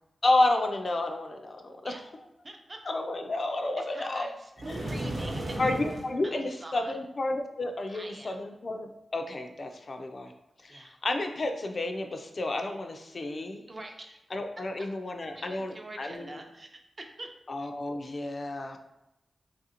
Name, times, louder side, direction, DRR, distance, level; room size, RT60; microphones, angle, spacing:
voice 1, 0.2-1.9 2.9-4.3 4.7-4.9 5.6-10.3 10.6-13.6 14.3-16.3 17.5-18.8, left 2 dB, 50° left, 4 dB, 0.3 m, -31 dB
voice 2, 2.4-2.8 3.8-5.6 6.2-7.0 7.9-8.4 10.7-11.0 13.7-14.2 14.8-14.9 15.3-16.8 17.2-17.3, right 2 dB, 35° right, 3 dB, 0.5 m, -45 dB
sound 1, 4.6-6.1, right 1 dB, 55° right, 0.9 m, -34 dB
3.1 x 2.5 x 2.8 m, 0.90 s
cardioid pair, 65°, 0 cm